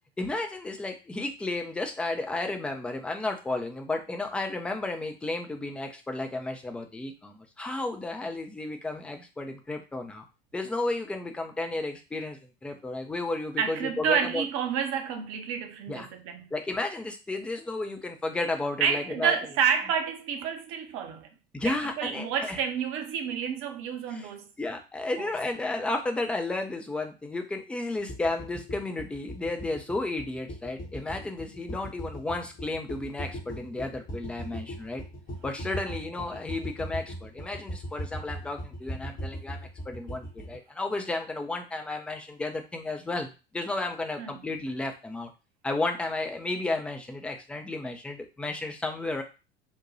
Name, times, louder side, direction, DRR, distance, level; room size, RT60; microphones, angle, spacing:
voice 1, 0.2-10.2 10.5-14.4 15.9-16.1 16.5-19.3 21.5-22.6 24.1-24.3 24.6-35.0 35.4-45.3 45.6-49.2, left 2 dB, 5° left, 0.4 m, -33 dB
voice 2, 13.6-16.5 18.8-21.3 21.6-24.5 25.2-25.3 35.6-35.9 44.2-44.3, right 7 dB, 40° right, 0.7 m, -29 dB
sound 1, 28.1-40.6, equal, 25° left, 0.8 m, -39 dB
4.0 x 2.1 x 3.0 m
figure-of-eight pair, 75°, 32 cm